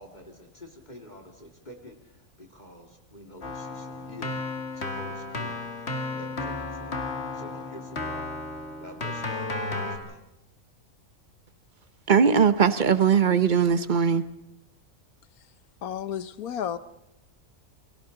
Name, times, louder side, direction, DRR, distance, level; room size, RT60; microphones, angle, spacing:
voice 1, 0.0-8.3 8.7-10.2, left 1 dB, 30° left, 2.3 m, -47 dB
Keyboard (musical), 3.4-10.0, left 2 dB, 50° left, 2.3 m, -33 dB
voice 2, 12.1-14.3, right 6 dB, 40° right, 0.9 m, -20 dB
voice 3, 15.8-16.8, left 9 dB, 90° left, 1.4 m, -32 dB
29.5 x 23.0 x 3.9 m
omnidirectional pair, 1.5 m